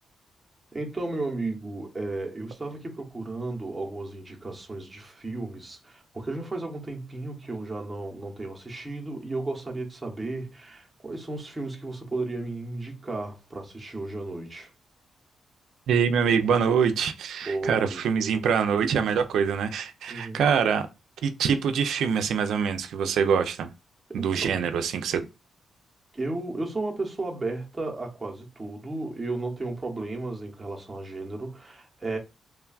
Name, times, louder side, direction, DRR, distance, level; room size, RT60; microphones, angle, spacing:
voice 1, 0.7-14.7 17.4-18.0 20.1-20.5 24.2-24.6 26.1-32.2, right 2 dB, 15° right, 0.7 m, -34 dB
voice 2, 15.9-20.9 21.2-23.7 24.1-25.3, right 7 dB, 85° right, 0.3 m, -24 dB
3.2 x 2.2 x 2.3 m
wide cardioid pair, 145°, 0 cm